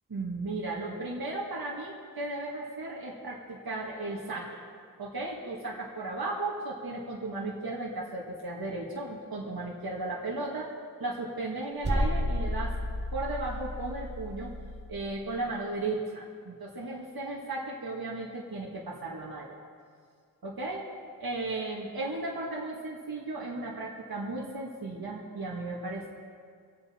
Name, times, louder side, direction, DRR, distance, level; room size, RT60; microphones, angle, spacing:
voice 1, 0.1-4.6 5.0-12.7 13.1-14.5 14.9-19.6 20.4-20.8 21.2-26.1, right 2 dB, 65° right, -4 dB, 2.1 m, -35 dB
sound 1, 11.8-14.9, left 1 dB, 25° right, 2.3 m, -31 dB
24.0 x 8.5 x 4.5 m, 2.1 s
cardioid pair, 40°, 40 cm